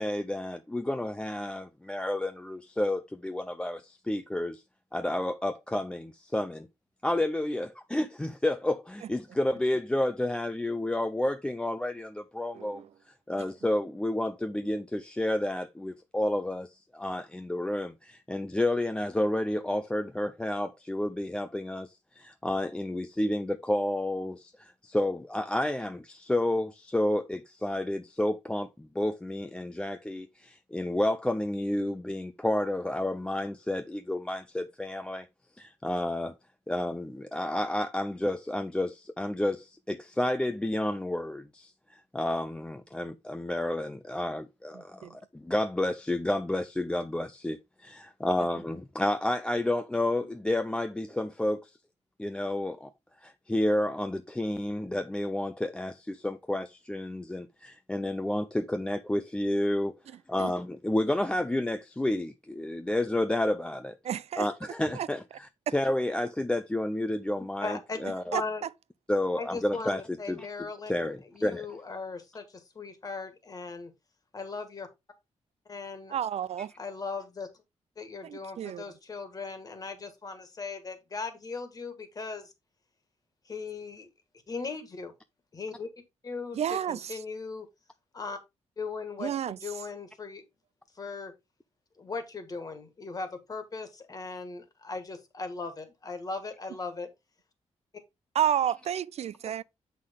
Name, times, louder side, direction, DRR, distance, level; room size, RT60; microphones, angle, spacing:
voice 1, 0.0-4.6 4.9-6.7 7.0-12.8 13.3-35.3 35.6-36.3 36.7-51.7 52.2-52.9 53.2-60.0 60.3-64.0 64.4-68.4 69.1-70.5 70.9-71.7, left 1 dB, 10° left, 0.5 m, -30 dB
voice 2, 64.0-64.5 64.9-65.1 65.7-65.8 68.3-68.4 76.1-76.7 78.2-78.8 86.5-87.2 89.2-89.6 98.3-99.6, right 10 dB, 60° right, 0.4 m, -30 dB
voice 3, 67.6-68.0 68.3-68.7 69.4-73.9 74.3-74.9 75.6-76.2 76.8-77.5 78.0-82.5 83.5-84.1 84.5-85.1 85.5-85.9 86.2-86.6 86.9-87.7 88.1-88.4 88.8-90.4 91.0-91.3 92.0-97.1, left 4 dB, 30° left, 1.6 m, -38 dB
8.3 x 5.7 x 3.6 m
wide cardioid pair, 170°, 12 cm